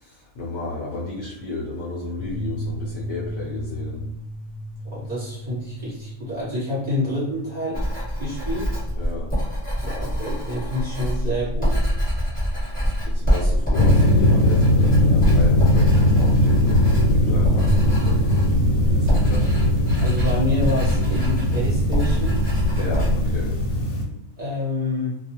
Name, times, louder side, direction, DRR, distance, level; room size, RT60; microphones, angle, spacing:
voice 1, 0.0-4.1 9.0-9.3 13.0-18.2 18.8-19.5 22.8-23.6, left 3 dB, 65° left, -5 dB, 0.8 m, -33 dB
sound 1, 2.2-11.5 12.4-12.5 17.3-21.3, equal, 40° left, 0.7 m, -36 dB
voice 2, 4.9-7.8 8.2-8.8 9.8-11.9 20.0-22.4 24.4-25.2, left 1 dB, 40° right, -8 dB, 1.0 m, -28 dB
Writing, 7.7-23.8, equal, 5° left, 1.1 m, -25 dB
sound 2, 13.7-24.0, left 1 dB, 85° left, 1.1 m, -19 dB
2.3 x 2.3 x 2.9 m, 0.82 s
omnidirectional pair, 1.4 m